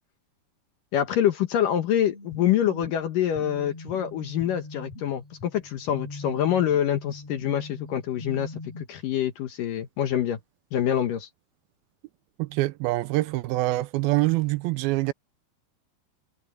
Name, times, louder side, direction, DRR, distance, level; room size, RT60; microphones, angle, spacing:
voice 1, 0.9-8.5 8.9-10.4 10.7-11.3, left 10 dB, 65° left, 2.6 m, -25 dB
sound 1, 2.0-8.8, left 2 dB, 40° left, 5.5 m, -41 dB
voice 2, 12.4-15.1, right 19 dB, 80° right, 2.4 m, -25 dB
omnidirectional pair, 4.5 m